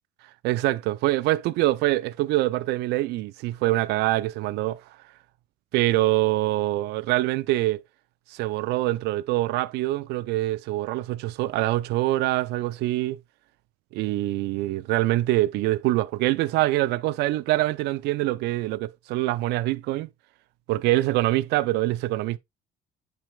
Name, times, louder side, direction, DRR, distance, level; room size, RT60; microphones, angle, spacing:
voice 1, 0.4-4.8 5.7-7.8 8.3-13.2 13.9-20.1 20.7-22.4, right 17 dB, 85° right, 0.4 m, -24 dB
8.9 x 5.1 x 2.2 m
cardioid pair, 110°, 17 cm